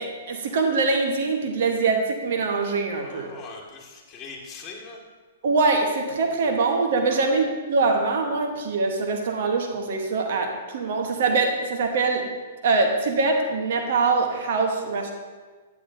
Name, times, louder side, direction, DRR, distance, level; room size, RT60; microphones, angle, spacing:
voice 1, 0.0-3.3 5.4-12.3 12.6-15.1, right 3 dB, 60° right, 3 dB, 1.2 m, -23 dB
voice 2, 3.0-5.0 7.1-7.3, left 4 dB, 25° left, -3 dB, 2.0 m, -41 dB
9.7 x 8.3 x 2.7 m, 1.4 s
hypercardioid pair, 125°, 0 cm